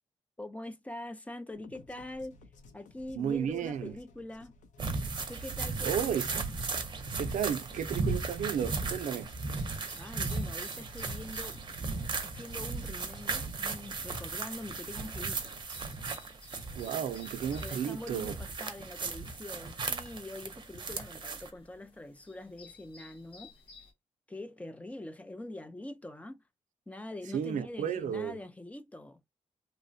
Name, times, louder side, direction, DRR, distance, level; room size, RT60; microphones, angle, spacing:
voice 1, 0.4-2.4 2.7-4.5 5.3-6.2 10.0-11.6 12.2-15.5 17.6-23.5 24.3-26.4 26.9-29.2, left 1 dB, 10° left, 0.4 m, -44 dB
sound 1, 1.5-15.7, left 3 dB, 85° left, 0.6 m, -56 dB
voice 2, 3.1-3.9 5.8-6.4 7.2-9.3 16.8-18.4 27.3-28.4, right 8 dB, 85° right, 0.4 m, -33 dB
sound 2, 4.8-21.5, right 4 dB, 40° right, 0.6 m, -36 dB
sound 3, 5.3-23.9, left 3 dB, 45° left, 0.9 m, -58 dB
3.0 x 2.1 x 2.5 m
wide cardioid pair, 145°, 12 cm